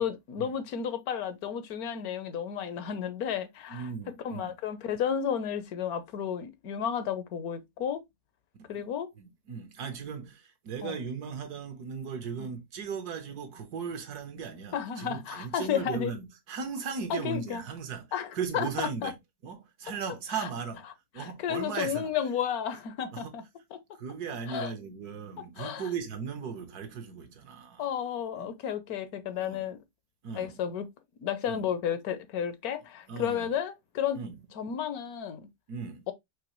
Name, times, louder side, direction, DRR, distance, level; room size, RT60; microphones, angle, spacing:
voice 1, 0.0-3.9 4.2-8.0 8.7-9.1 10.8-11.0 14.7-16.1 17.1-17.6 18.1-19.1 20.4-20.5 21.2-23.4 23.7-23.8 24.5-24.7 25.6-25.9 27.8-29.8 30.3-30.9 31.2-34.2 34.6-35.5 36.1-36.2, left 8 dB, 70° left, 1.1 m, -32 dB
voice 2, 3.7-4.5 8.7-8.8 9.1-19.2 19.4-20.8 21.1-22.1 23.1-23.3 24.0-27.9 28.4-28.5 29.3-29.6 30.2-30.7 31.4-31.7 33.1-33.5 34.1-34.4 35.7-36.1, right 6 dB, 75° right, 1.5 m, -37 dB
6.0 x 2.8 x 3.0 m
omnidirectional pair, 1.7 m